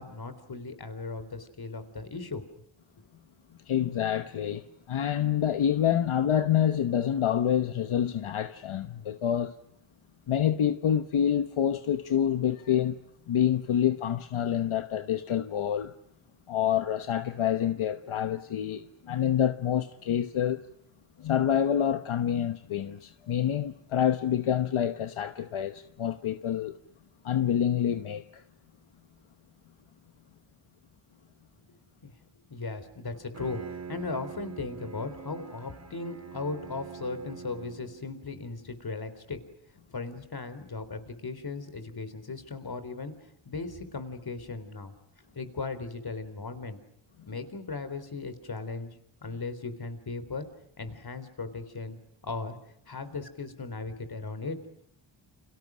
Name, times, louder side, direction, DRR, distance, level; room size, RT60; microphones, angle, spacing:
voice 1, 0.0-2.4 32.0-32.1 32.5-39.4 39.9-45.0 45.4-46.8 47.3-49.0 49.2-50.5 50.8-52.0 52.2-52.6 52.9-54.6, left 3 dB, 50° left, 3.9 m, -37 dB
voice 2, 3.7-9.6 10.3-12.9 13.3-15.9 16.5-20.6 21.2-26.7 27.2-28.4, left 9 dB, 80° left, 1.2 m, -27 dB
Bowed string instrument, 33.1-38.2, right 6 dB, 35° right, 4.5 m, -44 dB
30.0 x 28.5 x 6.3 m
wide cardioid pair, 110°, 48 cm